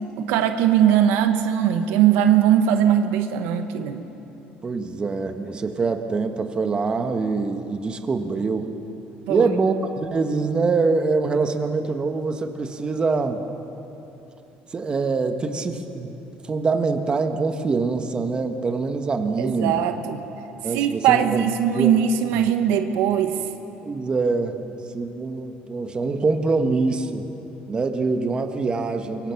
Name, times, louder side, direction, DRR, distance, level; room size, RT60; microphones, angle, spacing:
voice 1, 0.2-4.1 9.3-9.5 19.4-20.2 20.7-23.4, right 9 dB, 90° right, 7 dB, 1.2 m, -20 dB
voice 2, 4.6-8.7 9.3-13.4 14.7-16.1 16.5-19.8 20.6-21.5 21.7-22.0 22.4-22.5 23.8-24.7 24.9-27.3 27.7-29.3, right 4 dB, 25° right, 6 dB, 1.4 m, -24 dB
23.5 x 22.5 x 6.0 m, 3.0 s
cardioid pair, 130°, 4 cm